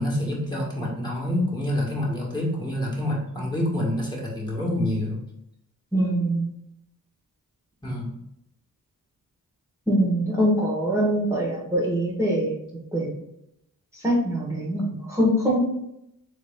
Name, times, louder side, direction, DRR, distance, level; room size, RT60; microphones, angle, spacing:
voice 1, 0.0-5.2 7.8-8.1, left 1 dB, 10° left, -4 dB, 1.5 m, -27 dB
voice 2, 5.9-6.5 9.9-12.5 12.9-13.1 13.9-15.6, right 1 dB, 10° right, -6 dB, 1.3 m, -23 dB
4.1 x 3.3 x 3.6 m, 0.80 s
cardioid pair, 75°, 35 cm